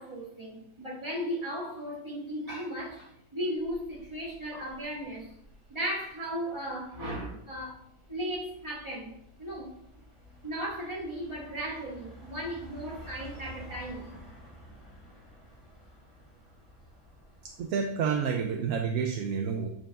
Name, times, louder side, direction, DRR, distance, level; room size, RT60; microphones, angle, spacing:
voice 1, 0.0-5.3 5.7-7.8 8.1-9.1 9.4-9.7 10.4-14.1, equal, 20° right, 2.4 m, -36 dB
sound 1, 3.5-17.7, equal, 40° left, 3.2 m, -52 dB
voice 2, 17.4-19.7, right 6 dB, 70° right, 0.9 m, -29 dB
9.0 x 5.4 x 2.4 m
omnidirectional pair, 1.6 m